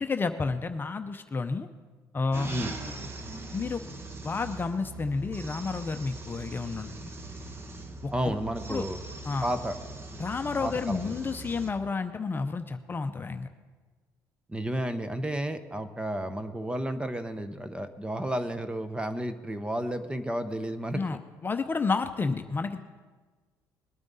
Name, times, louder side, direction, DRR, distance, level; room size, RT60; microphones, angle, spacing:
voice 1, 0.0-1.7 2.1-2.5 3.5-3.8 4.2-7.1 8.0-8.3 8.7-8.8 9.2-9.5 10.2-13.5 20.9-23.0, left 4 dB, 30° left, 8 dB, 0.7 m, -31 dB
sound 1, 2.3-11.7, right 2 dB, 35° right, 1.3 m, -41 dB
voice 2, 8.1-9.0 9.4-9.8 10.6-11.1 14.5-21.1, right 1 dB, 15° right, 10 dB, 0.9 m, -32 dB
20.5 x 8.8 x 4.1 m, 1.3 s
cardioid pair, 85°, 7 cm